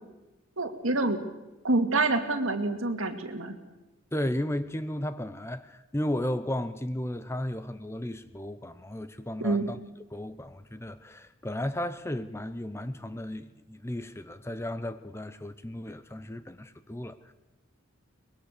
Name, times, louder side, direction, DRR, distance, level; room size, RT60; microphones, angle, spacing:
voice 1, 0.6-1.2 1.6-3.5 9.4-9.7, right 2 dB, 75° right, 2.2 m, -27 dB
voice 2, 4.1-9.8 10.1-17.3, left 1 dB, 10° left, 0.7 m, -34 dB
23.5 x 21.0 x 6.7 m
head